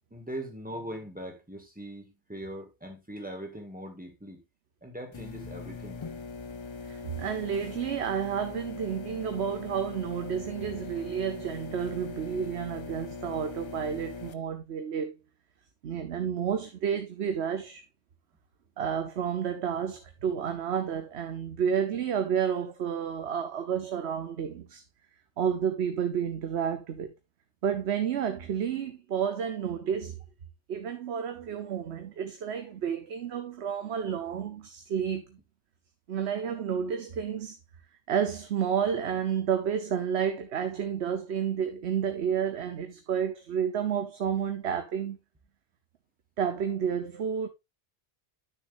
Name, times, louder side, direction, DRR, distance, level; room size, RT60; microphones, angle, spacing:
voice 1, 0.1-4.4 4.8-6.0, right 1 dB, 10° right, 2.0 m, -41 dB
sound 1, 5.1-14.3, left 4 dB, 35° left, 0.5 m, -41 dB
voice 2, 6.8-15.1 15.8-17.8 18.8-24.8 25.4-27.1 27.6-30.2 30.7-35.4 36.1-37.6 38.1-45.2 46.4-47.5, right 8 dB, 80° right, 1.1 m, -30 dB
11.5 x 6.3 x 2.6 m
omnidirectional pair, 1.1 m